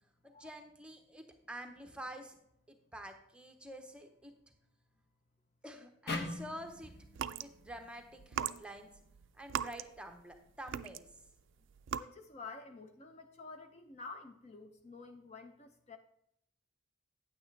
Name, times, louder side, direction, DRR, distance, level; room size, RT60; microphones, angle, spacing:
voice 1, 0.2-2.3 2.7-4.3 5.6-6.9 7.4-8.9 9.3-11.1, right 1 dB, 5° right, 5 dB, 0.7 m, -48 dB
sound 1, 6.1-9.3, left 2 dB, 50° left, 1.0 m, -44 dB
sound 2, 7.1-7.5 8.2-10.3 10.7-11.3 11.8-12.0, right 8 dB, 65° right, 0.3 m, -38 dB
voice 2, 11.9-16.0, left 3 dB, 30° left, 6 dB, 0.5 m, -50 dB
9.1 x 8.9 x 3.2 m, 0.75 s
head